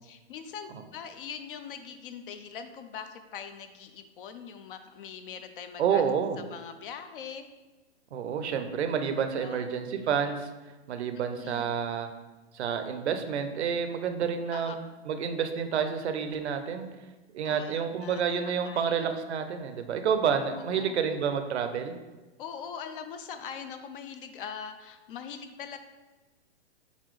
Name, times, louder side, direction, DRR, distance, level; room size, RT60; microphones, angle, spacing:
voice 1, 0.0-6.0 6.5-7.5 9.4-9.7 11.3-11.7 14.5-14.8 17.4-18.2 18.6-19.1 20.5-21.0 22.4-25.8, left 7 dB, 55° left, 9 dB, 0.5 m, -42 dB
voice 2, 5.8-6.4 8.1-10.5 10.9-12.1 12.5-14.7 15.1-16.9 17.3-21.9, right 7 dB, 80° right, 8 dB, 0.6 m, -29 dB
4.1 x 4.0 x 3.1 m, 1.2 s
hypercardioid pair, 130°, 33 cm